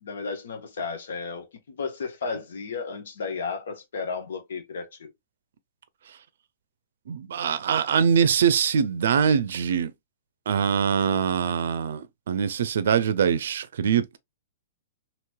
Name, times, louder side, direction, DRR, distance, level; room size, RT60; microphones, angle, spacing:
voice 1, 0.0-5.1, left 5 dB, 75° left, 0.9 m, -33 dB
voice 2, 7.1-9.9 10.5-14.2, right 7 dB, 75° right, 0.5 m, -23 dB
3.0 x 3.0 x 2.2 m
hypercardioid pair, 125°, 0 cm